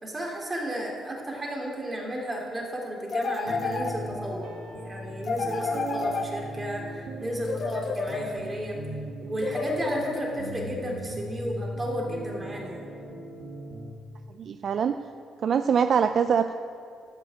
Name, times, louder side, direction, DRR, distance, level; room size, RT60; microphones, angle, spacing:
voice 1, 0.0-8.8 9.2-12.9, right 1 dB, 25° right, -2 dB, 2.8 m, -33 dB
sound 1, 3.1-4.4 5.2-6.8 7.4-8.6 9.4-10.6, left 4 dB, 50° left, 1.1 m, -31 dB
sound 2, 3.4-13.9, equal, 80° right, 1.6 m, -38 dB
voice 2, 14.4-14.9 15.4-16.5, right 7 dB, 55° right, 9 dB, 0.4 m, -23 dB
12.5 x 5.8 x 8.6 m, 2.4 s
cardioid pair, 90°, 0 cm